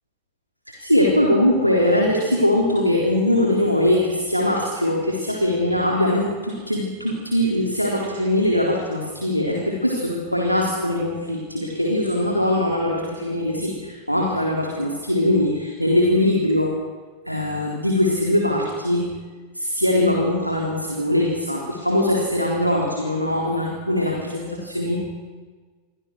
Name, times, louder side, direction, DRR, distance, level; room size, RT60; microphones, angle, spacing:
voice 1, 0.7-16.7 17.3-19.1 19.5-25.0, left 1 dB, 90° right, -1 dB, 3.9 m, -21 dB
28.5 x 24.5 x 6.4 m, 1.4 s
figure-of-eight pair, 90°, 0 cm